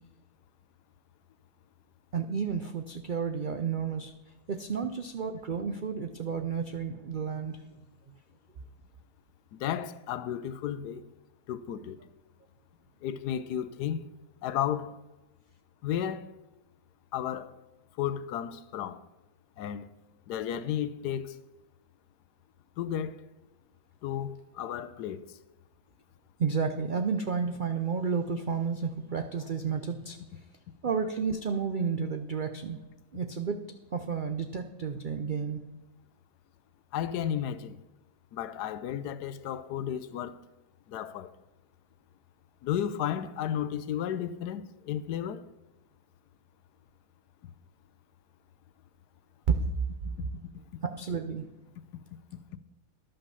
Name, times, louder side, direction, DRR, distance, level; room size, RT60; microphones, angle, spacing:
voice 1, 2.1-4.1 4.5-7.6 26.4-30.2 30.8-32.8 33.1-33.6 33.9-35.6 49.5-49.6 50.8-51.4, right 6 dB, 90° right, 0.4 m, -31 dB
voice 2, 9.5-11.1 11.5-12.0 13.0-14.1 14.4-15.0 15.8-16.3 17.1-17.5 18.0-19.0 19.6-19.9 20.3-21.4 22.8-23.2 24.0-25.3 36.9-37.8 38.3-40.4 40.9-41.3 42.6-45.4, left 10 dB, 90° left, 1.2 m, -33 dB
11.5 x 5.5 x 6.9 m
omnidirectional pair, 1.7 m